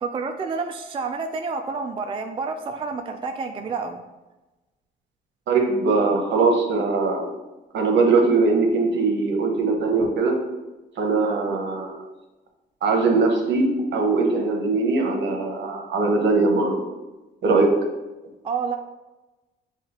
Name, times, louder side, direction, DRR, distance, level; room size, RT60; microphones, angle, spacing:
voice 1, 0.0-4.0 18.4-18.8, right 4 dB, 25° right, 4 dB, 0.3 m, -29 dB
voice 2, 5.5-7.3 7.7-10.4 11.0-11.9 12.8-16.8 17.4-17.7, right 3 dB, 65° right, 2 dB, 1.0 m, -21 dB
7.0 x 2.4 x 2.9 m, 1.1 s
cardioid pair, 90°, 20 cm